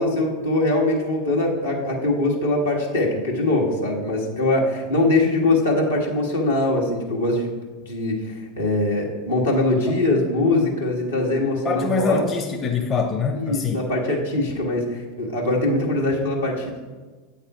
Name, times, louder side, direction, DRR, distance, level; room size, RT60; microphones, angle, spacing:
voice 1, 0.0-7.5 7.8-12.3 13.3-16.8, left 2 dB, 80° left, -3 dB, 1.5 m, -22 dB
voice 2, 11.6-13.8, left 5 dB, 30° left, 3 dB, 0.7 m, -24 dB
8.2 x 4.1 x 4.7 m, 1.3 s
figure-of-eight pair, 85°, 0 cm